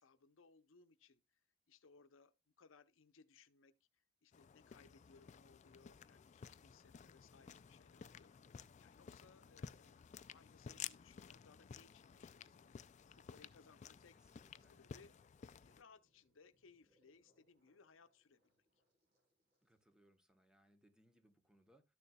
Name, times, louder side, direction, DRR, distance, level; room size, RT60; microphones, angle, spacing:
voice 1, 0.0-1.4 1.7-14.2 14.7-18.6, left 4 dB, 85° left, 0.6 m, -67 dB
sound 1, 4.3-15.8, left 7 dB, 35° left, 0.3 m, -54 dB
sound 2, 11.6-19.8, equal, 55° right, 4.2 m, -84 dB
voice 2, 14.1-14.8 19.6-21.9, right 1 dB, 5° right, 0.8 m, -72 dB
12.5 x 6.8 x 2.3 m
head